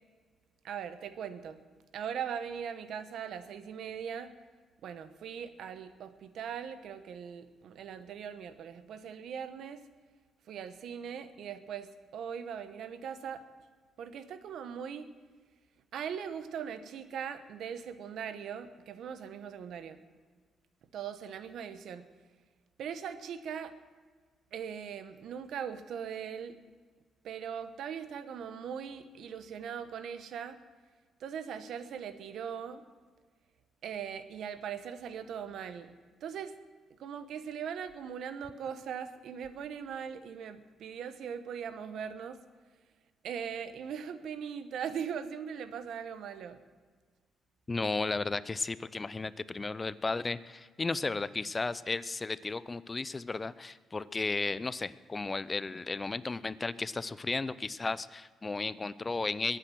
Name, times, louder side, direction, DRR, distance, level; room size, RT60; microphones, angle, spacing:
voice 1, 0.6-1.6 1.9-4.3 4.8-9.8 10.5-13.4 14.0-15.0 15.9-20.0 20.9-22.1 22.8-23.7 24.5-26.5 27.2-30.6 31.2-32.8 33.8-35.9 36.2-36.5 37.0-42.4 43.2-46.6, right 7 dB, 70° right, 11 dB, 1.0 m, -40 dB
voice 2, 47.7-59.6, left 3 dB, 25° left, 17 dB, 0.5 m, -34 dB
22.0 x 8.9 x 6.3 m, 1.5 s
cardioid pair, 90°, 0 cm